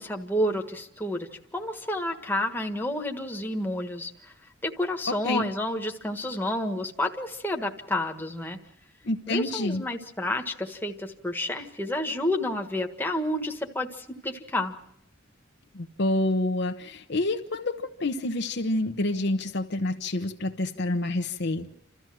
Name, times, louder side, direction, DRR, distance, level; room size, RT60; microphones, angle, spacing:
voice 1, 0.0-4.1 4.6-8.6 9.3-14.8, left 1 dB, 10° left, 3 dB, 1.5 m, -30 dB
voice 2, 5.1-5.4 9.0-9.8 15.7-21.8, left 2 dB, 60° left, 6 dB, 1.0 m, -28 dB
28.5 x 14.0 x 7.6 m, 0.79 s
head